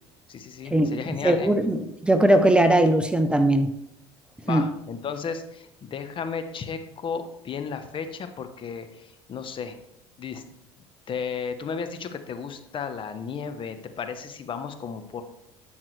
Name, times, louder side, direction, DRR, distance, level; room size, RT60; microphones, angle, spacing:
voice 1, 0.3-1.5 4.5-9.8 10.2-10.4 11.1-15.2, left 6 dB, 40° left, 8 dB, 1.0 m, -34 dB
voice 2, 1.2-3.7 4.5-4.6, right 1 dB, 10° right, 8 dB, 0.7 m, -20 dB
12.0 x 5.8 x 3.2 m, 0.84 s
supercardioid pair, 80°, 13 cm